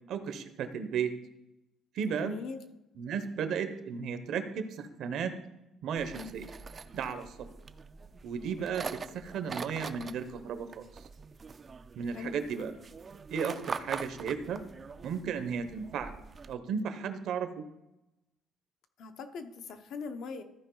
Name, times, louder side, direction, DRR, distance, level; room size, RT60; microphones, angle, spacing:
voice 1, 0.1-1.1 1.9-2.3 3.0-5.3 5.8-6.4 6.9-7.5 8.2-8.9 9.1-10.8 12.0-12.7 13.3-14.6 15.0-16.1 16.5-17.6, right 6 dB, 65° right, 10 dB, 0.8 m, -34 dB
voice 2, 2.1-2.6 12.1-12.3 19.0-20.4, left 5 dB, 65° left, 7 dB, 0.8 m, -41 dB
sound 1, 6.0-16.5, right 5 dB, 30° right, 0.4 m, -44 dB
14.0 x 4.8 x 3.9 m, 0.91 s
cardioid pair, 145°, 0 cm